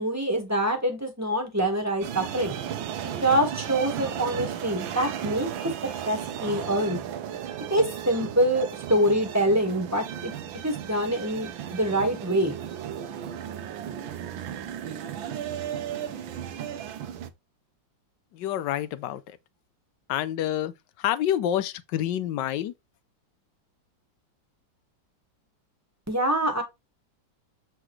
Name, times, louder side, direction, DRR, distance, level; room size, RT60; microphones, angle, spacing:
voice 1, 0.0-2.6 3.2-5.5 6.0-7.0 7.7-10.3 10.6-12.6 26.1-26.6, right 1 dB, 10° right, 1.5 m, -25 dB
sound 1, 2.0-17.3, right 9 dB, 85° right, 1.6 m, -35 dB
voice 2, 18.3-19.2 20.1-20.7 21.0-22.7, left 11 dB, 70° left, 1.3 m, -27 dB
7.8 x 4.9 x 3.2 m
omnidirectional pair, 2.1 m